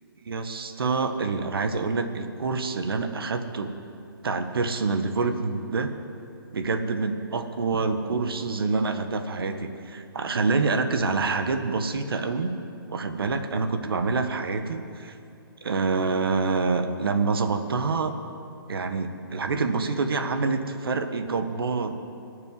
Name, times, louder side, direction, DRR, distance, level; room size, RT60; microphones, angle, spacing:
voice 1, 0.3-3.7 4.2-5.9 6.5-12.5 12.9-15.1 15.6-18.1 18.7-21.9, right 4 dB, 70° right, 7 dB, 1.5 m, -26 dB
19.5 x 6.8 x 9.6 m, 2.6 s
hypercardioid pair, 150°, 13 cm